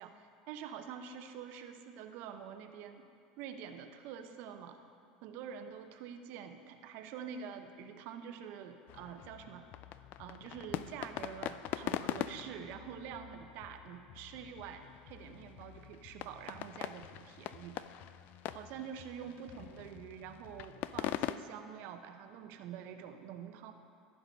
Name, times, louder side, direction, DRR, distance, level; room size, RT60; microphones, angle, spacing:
voice 1, 0.0-3.1 3.4-4.8 5.2-9.6 10.2-18.0 18.5-23.7, right 8 dB, 60° right, 7 dB, 0.8 m, -46 dB
sound 1, 8.9-21.4, left 13 dB, 50° left, 0.3 m, -43 dB
14.5 x 5.0 x 5.3 m, 2.3 s
hypercardioid pair, 90°, 4 cm